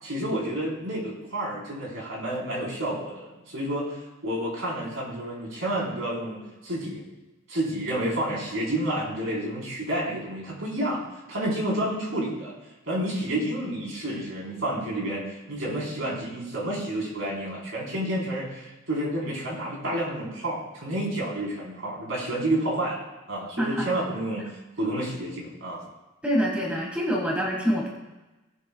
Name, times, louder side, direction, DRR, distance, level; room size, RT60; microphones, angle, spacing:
voice 1, 0.0-7.0 7.5-11.0 11.3-12.6 12.9-24.5 24.8-25.8, right 1 dB, 75° right, -4 dB, 4.2 m, -30 dB
voice 2, 23.6-23.9 26.2-27.9, equal, 5° right, -2 dB, 1.8 m, -25 dB
19.0 x 8.5 x 2.3 m, 1.1 s
head